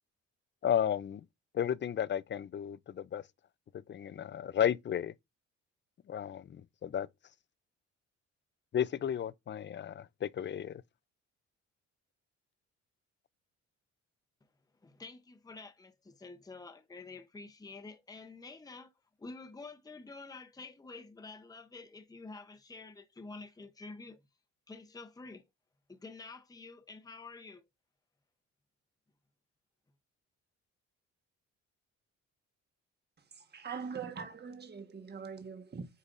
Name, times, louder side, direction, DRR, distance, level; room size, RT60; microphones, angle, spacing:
voice 1, 0.6-1.2 1.5-3.2 3.9-5.1 6.1-7.1 8.7-10.8, left 9 dB, 40° left, 0.4 m, -33 dB
voice 2, 14.8-18.9 19.2-24.2 24.7-25.4 25.9-27.6, left 3 dB, 10° left, 0.8 m, -49 dB
voice 3, 33.3-35.9, right 6 dB, 35° right, 1.4 m, -42 dB
8.2 x 5.0 x 2.5 m
cardioid pair, 90°, 30 cm